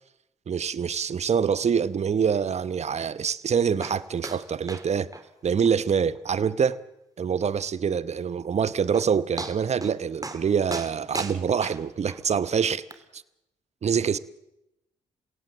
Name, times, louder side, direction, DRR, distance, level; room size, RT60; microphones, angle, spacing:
voice 1, 0.5-5.1 5.4-6.8 7.2-12.8 13.1-13.2 13.8-14.2, right 7 dB, 50° right, 0.9 m, -25 dB
sound 1, 3.8-4.4 4.7-4.9 5.1-5.2 5.7-5.8 6.2-6.3 6.7-6.8 8.5-8.6 8.9-9.1 9.4-10.0 10.2-10.4 10.7-12.2 12.9-13.0, right 2 dB, 25° right, 3.0 m, -35 dB
29.0 x 17.0 x 7.6 m
hypercardioid pair, 40°, 15 cm